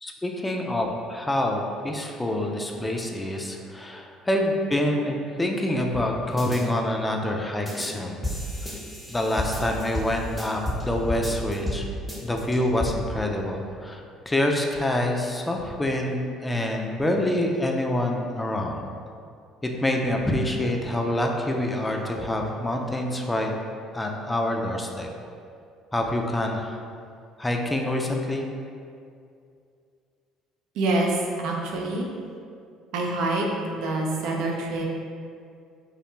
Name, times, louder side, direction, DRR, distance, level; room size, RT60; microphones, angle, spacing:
voice 1, 0.0-8.2 9.1-11.9 12.2-18.9 19.6-23.5 23.9-25.1 25.9-26.8 27.4-28.5, left 1 dB, 15° left, 1 dB, 0.3 m, -26 dB
sound 1, 6.4-6.6 7.7-7.9 8.2-10.8 11.1-11.8 12.1-12.9, left 1 dB, 5° right, 0.7 m, -31 dB
voice 2, 30.7-32.1 32.9-33.5 33.8-34.8, right 2 dB, 70° right, -1 dB, 0.4 m, -26 dB
2.3 x 2.1 x 2.9 m, 2.4 s
hypercardioid pair, 65°, 0 cm